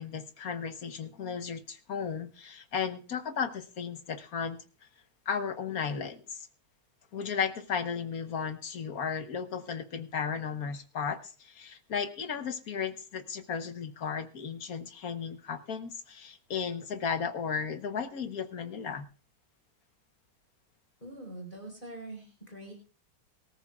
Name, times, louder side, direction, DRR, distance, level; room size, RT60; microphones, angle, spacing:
voice 1, 0.0-4.6 5.3-6.5 7.1-19.0, left 6 dB, 50° left, 9 dB, 1.3 m, -35 dB
voice 2, 21.0-22.8, right 1 dB, 20° left, 1 dB, 4.5 m, -44 dB
23.0 x 14.0 x 2.4 m, 0.36 s
omnidirectional pair, 2.3 m